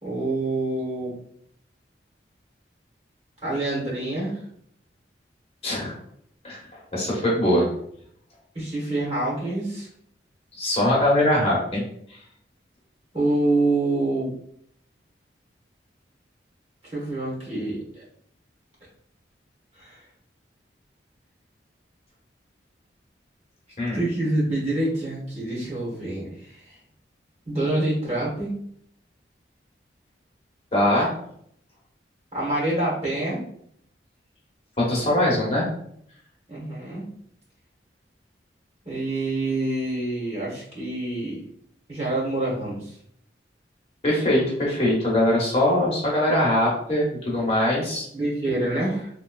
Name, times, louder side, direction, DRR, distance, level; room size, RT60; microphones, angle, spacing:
voice 1, 0.0-1.1 3.4-4.4 8.5-9.9 13.1-14.3 16.9-18.0 19.8-20.0 23.9-26.7 27.4-28.5 32.3-33.4 36.5-37.1 38.8-41.4 41.9-43.0 48.1-49.1, right 2 dB, 35° right, -5 dB, 1.2 m, -26 dB
voice 2, 5.6-5.9 6.4-6.6 6.9-7.7 10.6-11.8 23.8-24.0 30.7-31.1 34.8-35.6 44.0-48.0, left 1 dB, 35° left, -4 dB, 1.0 m, -22 dB
3.0 x 3.0 x 2.3 m, 0.67 s
head